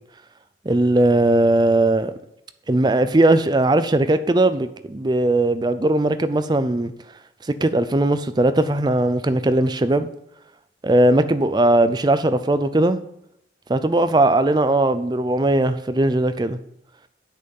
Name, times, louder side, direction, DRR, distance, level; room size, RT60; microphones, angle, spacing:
voice 1, 0.7-2.1 2.7-6.9 7.6-10.1 10.8-13.0 13.7-16.6, right 1 dB, 25° right, 12 dB, 0.4 m, -19 dB
7.9 x 6.5 x 5.4 m, 0.77 s
head